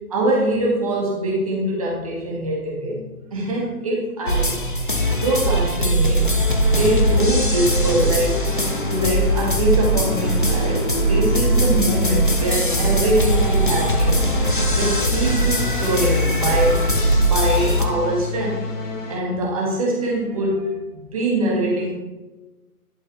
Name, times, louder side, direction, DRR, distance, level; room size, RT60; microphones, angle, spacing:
voice 1, 0.1-3.0 3.3-6.3 6.8-8.4 8.9-14.2 14.7-16.8 17.2-18.6 19.1-21.9, right 1 dB, 25° right, -4 dB, 1.5 m, -23 dB
sound 1, 4.3-17.8, right 1 dB, 40° left, 0.5 m, -20 dB
sound 2, 7.6-19.2, left 3 dB, 60° left, 1.1 m, -30 dB
11.0 x 3.9 x 3.0 m, 1.1 s
hypercardioid pair, 165°, 44 cm